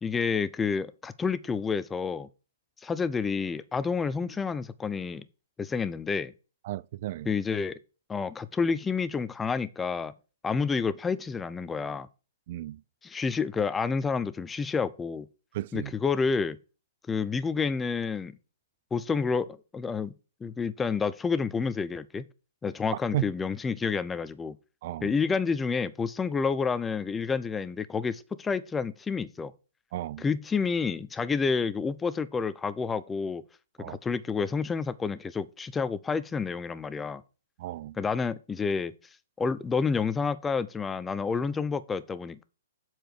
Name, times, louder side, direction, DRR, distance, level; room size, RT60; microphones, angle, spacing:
voice 1, 0.0-2.3 2.8-5.2 5.6-6.3 7.3-7.8 8.1-10.1 10.4-12.1 13.0-15.3 15.7-16.6 17.1-18.4 18.9-20.1 20.4-22.3 22.6-24.6 25.0-29.5 30.2-33.4 33.8-37.2 38.0-38.9 39.4-42.4, left 5 dB, 10° left, 0.7 m, -29 dB
voice 2, 6.6-7.3 12.5-12.8 15.5-15.9 23.1-23.3 24.8-25.1 29.9-30.2 33.8-34.0 37.6-38.0, right 14 dB, 50° right, 0.5 m, -34 dB
7.7 x 4.5 x 6.7 m
hypercardioid pair, 135°, 0 cm